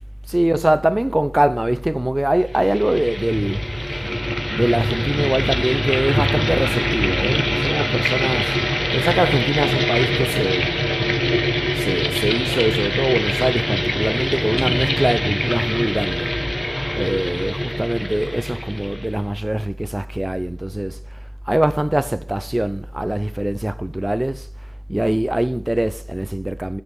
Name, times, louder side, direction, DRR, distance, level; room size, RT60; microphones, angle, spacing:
voice 1, 0.3-4.2 4.5-10.8 11.7-16.4 16.9-24.5 24.9-26.8, right 1 dB, 20° right, 0.7 m, -22 dB
sound 1, 2.5-19.2, equal, 10° left, 1.2 m, -22 dB
9.8 x 6.2 x 3.6 m
wide cardioid pair, 50°, 0 cm